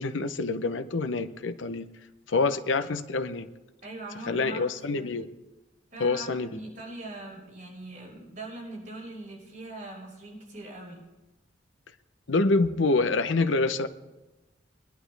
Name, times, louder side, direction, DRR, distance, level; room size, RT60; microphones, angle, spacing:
voice 1, 0.0-1.9 2.3-3.5 4.3-5.3 6.0-6.5 12.3-13.9, left 3 dB, 90° left, 11 dB, 0.7 m, -26 dB
voice 2, 3.8-5.2 5.9-11.0, right 2 dB, 40° right, -3 dB, 5.5 m, -41 dB
22.0 x 11.0 x 3.4 m, 1.1 s
head